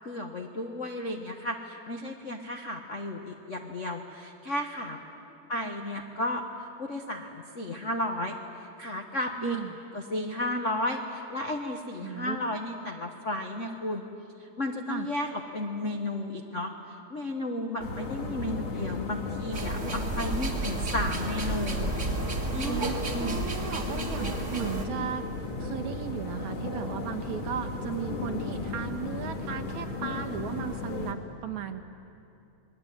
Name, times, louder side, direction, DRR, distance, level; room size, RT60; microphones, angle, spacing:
voice 1, 0.0-5.0 5.5-9.6 9.9-14.0 14.4-16.7 17.1-21.9 22.5-22.8 23.1-23.5, left 1 dB, 70° left, 3 dB, 0.7 m, -33 dB
voice 2, 9.4-9.7 12.0-12.4 14.9-15.1 22.6-31.8, right 8 dB, 70° right, 8 dB, 2.6 m, -36 dB
sound 1, 17.8-31.1, left 3 dB, 40° left, 2.9 m, -35 dB
sound 2, 19.5-24.9, right 2 dB, 30° right, 1.7 m, -32 dB
28.5 x 21.0 x 9.3 m, 2.7 s
omnidirectional pair, 3.7 m